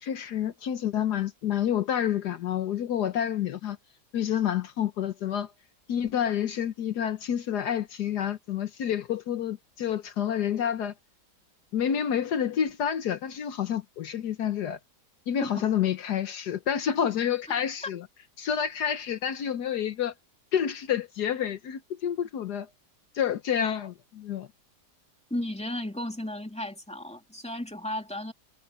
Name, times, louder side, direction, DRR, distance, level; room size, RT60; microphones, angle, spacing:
voice 1, 0.0-3.8 4.1-5.5 5.9-10.9 11.7-14.8 15.3-18.0 18.4-20.1 20.5-22.7 23.1-24.5, left 9 dB, 70° left, 1.5 m, -29 dB
voice 2, 25.3-28.3, left 1 dB, 5° left, 2.7 m, -34 dB
omnidirectional pair, 1.8 m